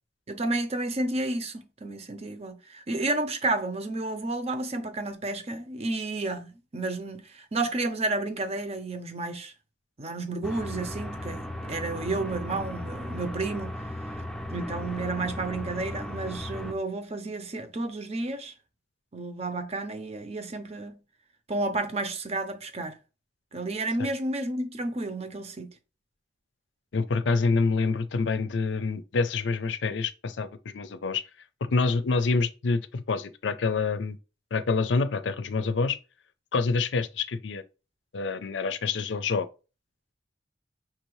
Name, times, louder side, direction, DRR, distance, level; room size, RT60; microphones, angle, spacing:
voice 1, 0.3-9.5 10.0-13.8 14.5-18.5 19.1-21.0 21.5-23.0 23.5-25.7, right 2 dB, 35° right, 0.7 m, -31 dB
sound 1, 10.4-16.7, left 1 dB, ahead, 0.6 m, -36 dB
voice 2, 26.9-31.2 31.7-34.2 34.5-36.0 36.5-37.6 38.1-39.5, left 4 dB, 80° left, 0.5 m, -27 dB
5.9 x 2.7 x 3.1 m
head